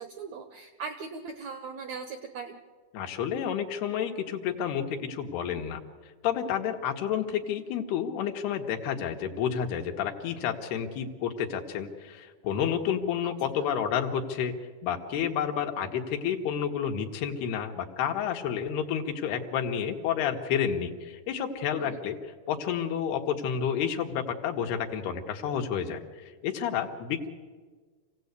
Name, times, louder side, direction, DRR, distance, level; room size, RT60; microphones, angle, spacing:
voice 1, 0.0-2.6 13.6-13.7 21.8-22.0, right 5 dB, 80° right, 7 dB, 1.6 m, -39 dB
voice 2, 2.9-5.8 6.2-14.5 14.8-22.2 22.5-27.3, left 8 dB, 90° left, 4 dB, 3.5 m, -30 dB
27.0 x 17.0 x 8.2 m, 1.5 s
omnidirectional pair, 4.4 m